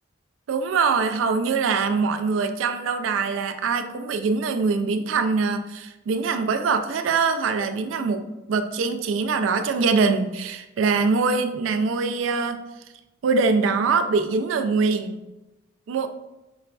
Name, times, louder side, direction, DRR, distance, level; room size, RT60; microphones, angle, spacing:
voice 1, 0.5-12.6 13.2-15.2 15.9-16.1, right 4 dB, 90° right, 8 dB, 0.3 m, -23 dB
4.9 x 2.3 x 2.3 m, 1.0 s
head